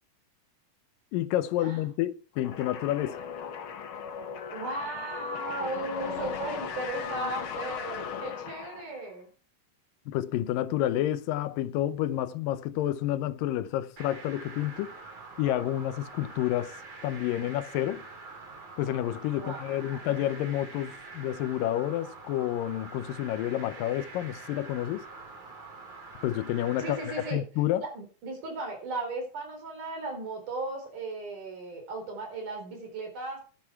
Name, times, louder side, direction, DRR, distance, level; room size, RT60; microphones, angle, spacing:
voice 1, 1.1-3.2 10.1-14.9 15.4-16.8 17.0-18.0 18.8-25.1 26.2-27.8, left 13 dB, 85° left, 2.5 m, -29 dB
sound 1, 2.4-9.1, left 7 dB, 60° left, 1.4 m, -37 dB
voice 2, 4.5-9.3 19.4-20.1 26.8-27.4 27.8-33.4, right 2 dB, 65° right, 5.6 m, -36 dB
sound 2, 14.0-27.3, right 3 dB, 50° right, 4.3 m, -45 dB
12.0 x 11.0 x 4.7 m
omnidirectional pair, 3.9 m